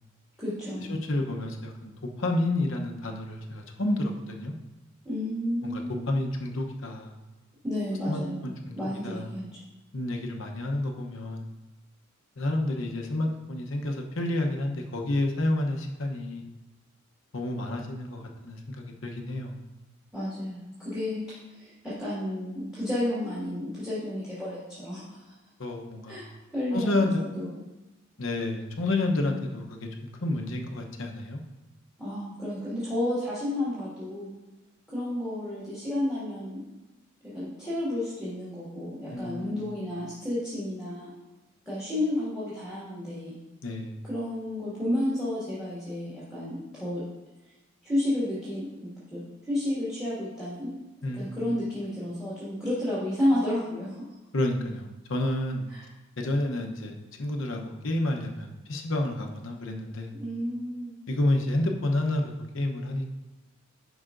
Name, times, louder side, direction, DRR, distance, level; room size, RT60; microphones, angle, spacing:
voice 1, 0.4-1.0 5.0-6.0 7.6-9.5 20.1-21.2 21.5-25.3 26.1-27.5 32.0-34.3 34.9-36.6 37.3-41.1 41.7-43.4 44.1-47.0 47.8-50.7 51.1-54.0 55.7-55.9 60.2-60.9, left 1 dB, 5° right, -10 dB, 1.9 m, -31 dB
voice 2, 0.9-1.9 2.2-4.5 5.6-7.1 8.1-8.8 9.0-9.3 9.9-11.5 12.4-16.4 17.3-19.6 25.6-26.2 26.7-27.2 28.2-29.9 30.2-31.4 39.1-39.8 43.6-44.0 51.0-51.6 54.3-55.7 56.2-60.1 61.1-63.1, left 1 dB, 65° left, 2 dB, 0.8 m, -30 dB
11.0 x 4.9 x 2.6 m, 1.1 s
head